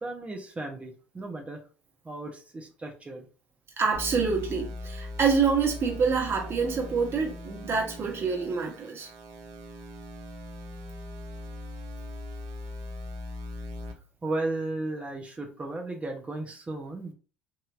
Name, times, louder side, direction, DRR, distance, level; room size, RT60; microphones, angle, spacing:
voice 1, 0.0-1.6 2.0-3.3 14.2-17.1, right 2 dB, 20° right, 0.8 m, -35 dB
voice 2, 3.8-9.1, right 5 dB, 40° right, 1.3 m, -26 dB
sound 1, 3.9-13.9, left 1 dB, 70° right, 0.8 m, -40 dB
3.2 x 2.7 x 2.5 m
hypercardioid pair, 70°, 6 cm